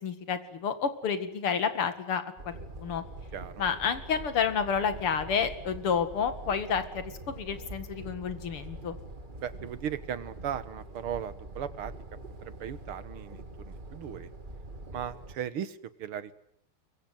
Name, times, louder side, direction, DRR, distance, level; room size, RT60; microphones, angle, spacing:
voice 1, 0.0-3.0 3.6-9.0, left 6 dB, 80° left, 11 dB, 2.9 m, -30 dB
sound 1, 2.4-15.4, right 2 dB, 25° right, 1.9 m, -44 dB
voice 2, 9.4-11.9 12.4-14.3 14.9-16.3, right 9 dB, 80° right, 15 dB, 2.2 m, -37 dB
23.5 x 23.0 x 9.3 m, 0.68 s
omnidirectional pair, 2.4 m